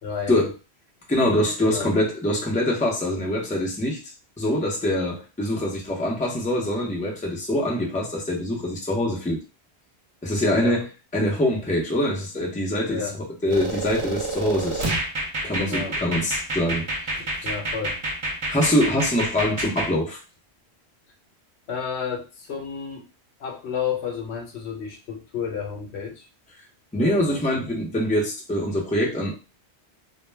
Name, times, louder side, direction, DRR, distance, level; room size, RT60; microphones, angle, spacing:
voice 1, 0.0-0.5 1.6-1.9 10.5-10.8 12.9-13.2 15.6-16.0 17.2-18.0 21.7-23.1 23.4-26.3 27.0-27.6, left 6 dB, 75° left, 0.9 m, -31 dB
voice 2, 1.1-4.0 4.4-9.4 10.2-10.9 11.1-14.8 15.4-17.5 18.5-20.2 26.9-29.4, left 1 dB, 10° left, 0.5 m, -24 dB
sound 1, 13.5-19.9, right 1 dB, 50° right, 0.3 m, -28 dB
2.2 x 2.1 x 3.2 m
omnidirectional pair, 1.1 m